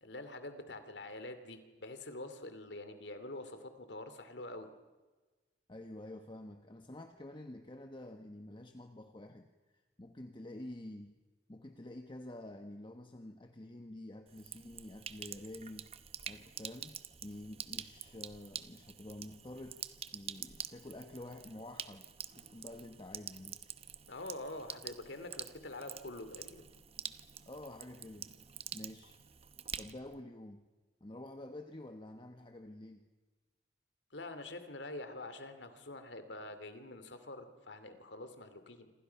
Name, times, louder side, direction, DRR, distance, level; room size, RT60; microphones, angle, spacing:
voice 1, 0.0-4.7 24.1-26.7 34.1-38.9, left 2 dB, 80° left, 9 dB, 2.6 m, -46 dB
voice 2, 5.7-9.5 10.0-11.1 11.5-15.9 16.2-19.8 20.1-22.0 22.3-23.6 27.5-28.3 28.7-29.2 29.8-30.6 31.0-33.0, left 1 dB, 25° left, 6 dB, 1.2 m, -48 dB
Sink (filling or washing), 14.3-30.2, right 8 dB, 35° right, 0.9 m, -47 dB
28.5 x 26.5 x 5.8 m, 1.2 s
head